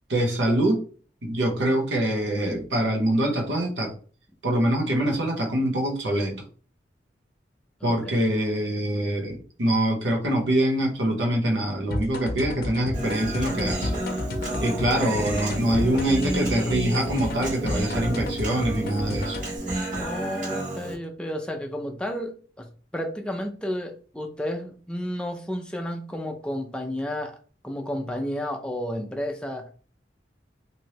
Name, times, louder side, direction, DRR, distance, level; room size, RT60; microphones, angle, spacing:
voice 1, 0.1-0.8 1.2-3.9 4.4-6.4 7.8-13.9 14.6-19.4, right 1 dB, 90° right, 1 dB, 0.9 m, -24 dB
voice 2, 7.8-8.2 20.0-27.4 27.6-29.7, equal, 5° left, 3 dB, 0.4 m, -32 dB
sound 1, 11.9-19.6, left 1 dB, 55° left, 0.6 m, -32 dB
Human voice, 12.9-20.9, right 1 dB, 45° right, 1.2 m, -31 dB
3.1 x 2.6 x 2.8 m, 0.40 s
head